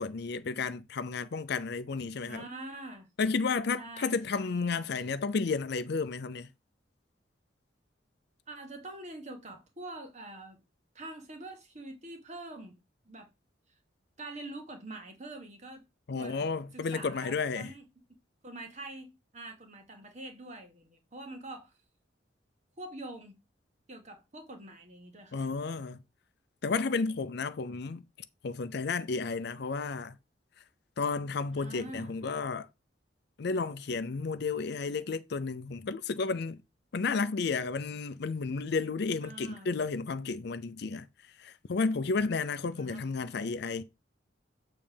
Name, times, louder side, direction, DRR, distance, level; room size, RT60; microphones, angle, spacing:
voice 1, 0.0-2.4 3.2-6.5 16.1-17.7 25.3-26.0 26.6-28.0 28.4-30.2 31.0-32.7 33.4-36.6 36.9-41.1 41.4-43.8, left 4 dB, 60° left, 0.5 m, -32 dB
voice 2, 2.2-3.1 3.8-4.8 8.5-10.6 10.9-12.8 13.0-13.3 14.2-15.8 16.2-16.5 16.7-17.8 18.4-21.7 22.8-23.4 23.9-25.4 31.5-32.1 39.2-39.7 42.7-43.0, right 2 dB, 40° right, 1.4 m, -45 dB
7.0 x 3.3 x 5.1 m
head